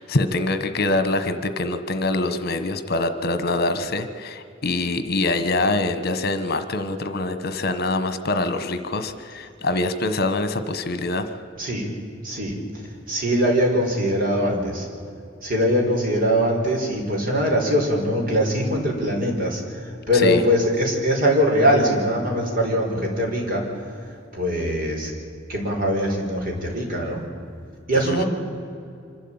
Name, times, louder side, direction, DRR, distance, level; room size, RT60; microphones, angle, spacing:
voice 1, 0.0-11.3 20.2-20.4 28.1-28.2, left 2 dB, 55° left, 11 dB, 1.3 m, -24 dB
voice 2, 13.1-14.9 15.4-24.0 24.3-25.1 25.5-27.2 27.9-28.3, equal, 50° right, 0 dB, 4.9 m, -22 dB
25.5 x 13.0 x 8.9 m, 2.4 s
head